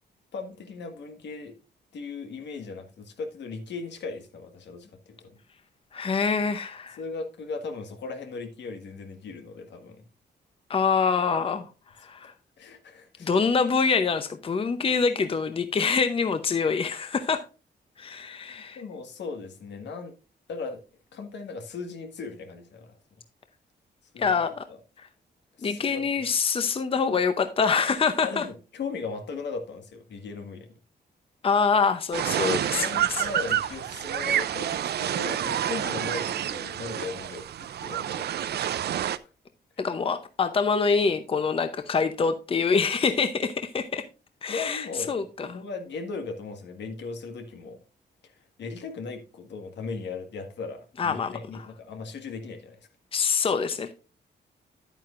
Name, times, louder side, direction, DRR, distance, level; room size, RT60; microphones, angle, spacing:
voice 1, 0.3-1.6 1.9-5.4 7.0-10.1 12.6-13.3 18.5-20.1 20.5-20.8 21.1-23.0 24.1-24.3 25.6-26.0 28.2-30.7 32.6-38.5 38.8-39.2 44.5-47.8 48.2-48.3 48.6-52.8, left 4 dB, 80° left, 1.6 m, -38 dB
voice 2, 5.9-7.0 10.7-11.7 12.0-12.3 13.2-17.5 18.0-18.8 24.2-24.7 25.0-25.1 25.6-28.5 31.4-33.3 39.8-44.0 44.4-45.6 51.0-51.4 53.1-53.9, left 5 dB, 30° left, 0.7 m, -25 dB
sound 1, 32.1-39.2, right 10 dB, 65° right, 0.5 m, -28 dB
10.0 x 9.0 x 2.5 m
wide cardioid pair, 130°, 18 cm